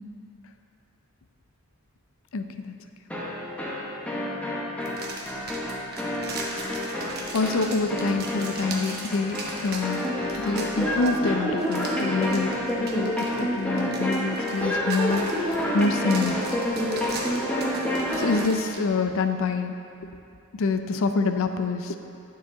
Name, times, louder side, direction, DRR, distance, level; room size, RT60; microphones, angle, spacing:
voice 1, 2.3-2.8 7.3-10.1 10.4-16.4 18.2-19.7 20.5-22.0, left 3 dB, 65° left, 8 dB, 0.5 m, -26 dB
sound 1, 3.1-18.6, equal, 5° left, 1.0 m, -28 dB
sound 2, 4.8-18.8, right 3 dB, 45° right, 1.0 m, -40 dB
9.0 x 7.1 x 3.7 m, 2.5 s
head